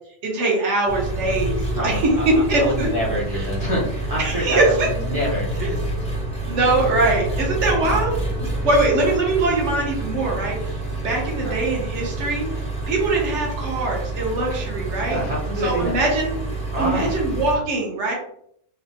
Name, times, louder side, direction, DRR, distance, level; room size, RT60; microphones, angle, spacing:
voice 1, 0.2-2.9 3.3-3.4 4.2-4.9 5.6-5.7 6.5-15.2 15.6-16.3 16.8-18.1, right 2 dB, 65° right, -1 dB, 1.2 m, -22 dB
Engine, 0.9-17.6, right 2 dB, 5° left, 0.5 m, -28 dB
voice 2, 1.7-5.8 6.7-6.8 7.7-8.1 11.4-11.5 15.1-15.9 16.7-17.2, equal, 35° right, -6 dB, 0.7 m, -27 dB
3.2 x 2.1 x 2.7 m, 0.69 s
omnidirectional pair, 1.4 m